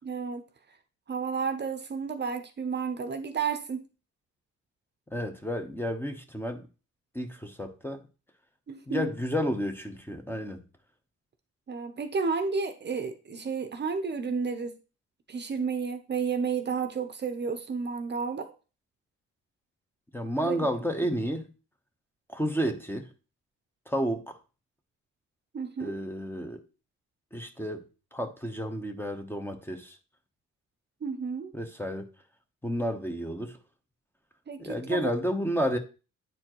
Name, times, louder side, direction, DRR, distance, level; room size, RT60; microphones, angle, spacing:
voice 1, 0.1-0.4 1.1-3.9 8.7-9.1 11.7-14.7 15.3-18.5 20.4-20.6 25.5-26.0 31.0-31.5 34.5-35.1, right 5 dB, 35° right, 0.7 m, -31 dB
voice 2, 5.1-6.7 7.1-8.0 8.9-10.6 20.1-21.5 22.3-23.1 23.9-24.4 25.8-26.6 27.3-27.8 28.1-30.0 31.5-32.1 32.6-33.6 34.6-35.8, equal, 5° left, 0.8 m, -31 dB
8.9 x 4.3 x 3.0 m
cardioid pair, 90°, 30 cm